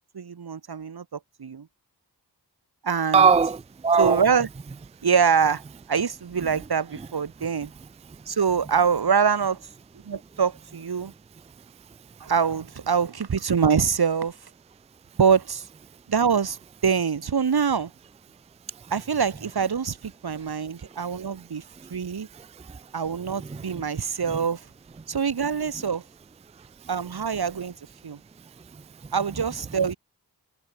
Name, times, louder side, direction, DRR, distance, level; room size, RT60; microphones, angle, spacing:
voice 1, 0.1-1.7 2.8-3.3 4.0-4.5 5.0-5.6 5.9-7.7 8.3-9.6 10.1-11.1 12.2-14.3 15.2-15.6 16.1-17.9 18.9-21.6 21.9-22.3 22.9-24.6 25.1-26.0 26.9-27.7 28.0-28.2 29.1-30.0, right 6 dB, 65° right, 2.0 m, -24 dB
voice 2, 3.1-4.2 22.4-22.8 23.5-23.8 24.3-24.4, right 5 dB, 15° right, 0.4 m, -21 dB
wide cardioid pair, 115°, 40 cm